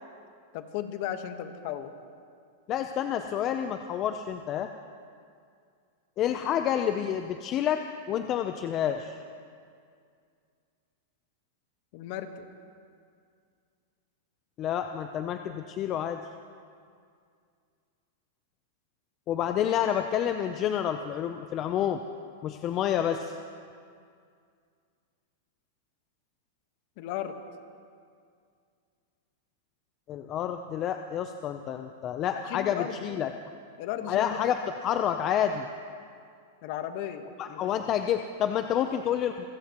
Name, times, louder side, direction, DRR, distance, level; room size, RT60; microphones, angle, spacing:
voice 1, 0.5-1.9 11.9-12.5 27.0-27.4 32.5-33.0 33.8-34.5 36.6-37.7, left 10 dB, 55° left, 8 dB, 1.2 m, -35 dB
voice 2, 2.7-4.7 6.2-9.2 14.6-16.2 19.3-22.0 22.4-23.4 30.1-33.3 34.1-34.6 34.8-35.7 37.4-39.5, left 9 dB, 35° left, 7 dB, 0.6 m, -29 dB
28.0 x 15.5 x 3.0 m, 2.2 s
hypercardioid pair, 130°, 0 cm